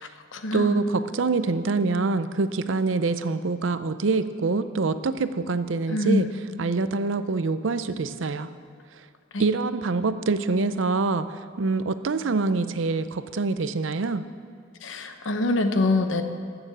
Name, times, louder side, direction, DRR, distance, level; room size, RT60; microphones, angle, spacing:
voice 1, 0.0-0.8 5.9-6.3 9.3-9.5 14.8-16.2, left 2 dB, 80° left, 7 dB, 1.0 m, -25 dB
voice 2, 0.5-6.3 6.6-8.5 9.4-14.2, right 3 dB, 80° right, 12 dB, 0.6 m, -25 dB
14.5 x 6.9 x 7.4 m, 2.2 s
head